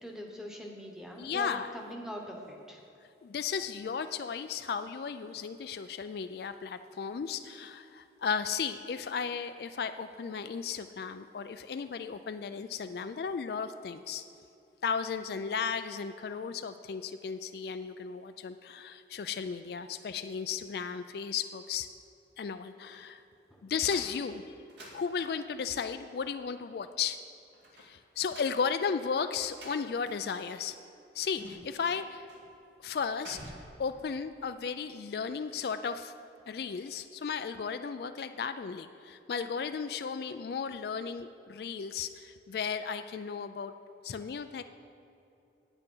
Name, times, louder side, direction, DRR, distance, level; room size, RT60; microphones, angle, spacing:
voice 1, 0.0-2.8 23.5-23.6, equal, 5° right, 0 dB, 1.0 m, -42 dB
voice 2, 1.2-1.7 3.2-14.2 14.8-21.9 22.4-23.2 23.6-24.6 24.9-27.2 27.8-30.8 31.1-32.3 32.8-33.4 33.8-36.1 36.5-43.7 44.0-44.6, left 6 dB, 55° left, 9 dB, 0.3 m, -35 dB
sound 1, 23.8-25.7 27.5-30.5 30.7-30.8 31.2-31.8 32.3-32.5 32.8-33.8, right 1 dB, 70° right, 2.0 m, -50 dB
9.3 x 9.0 x 5.5 m, 2.7 s
head